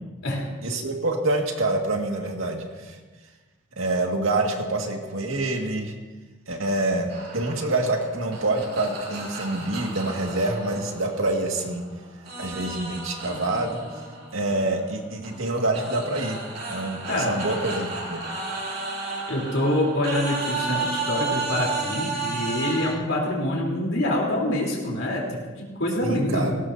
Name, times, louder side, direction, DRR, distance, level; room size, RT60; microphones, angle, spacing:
voice 1, 0.6-3.0 3.8-5.9 6.5-11.8 12.4-13.8 14.3-18.2 26.0-26.5, right 2 dB, 80° right, 1 dB, 2.1 m, -26 dB
sound 1, 7.1-11.8 12.3-22.9, right 3 dB, 50° right, 3.0 m, -33 dB
voice 2, 19.3-26.6, left 1 dB, 75° left, -3 dB, 3.8 m, -26 dB
19.0 x 17.0 x 2.8 m, 1.3 s
head